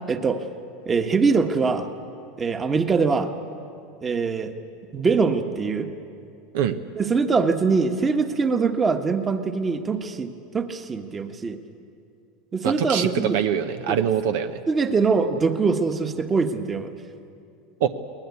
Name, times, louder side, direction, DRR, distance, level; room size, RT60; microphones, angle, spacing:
voice 1, 0.1-0.4 0.9-1.9 2.4-3.3 4.0-4.5 4.9-5.9 6.9-11.6 12.5-13.5 13.9-14.0 14.7-16.9, right 4 dB, 25° right, 7 dB, 1.4 m, -23 dB
voice 2, 12.6-13.1 13.3-14.6 17.8-17.9, right 9 dB, 75° right, 8 dB, 1.0 m, -23 dB
23.0 x 18.5 x 8.6 m, 2.5 s
supercardioid pair, 110°, 0 cm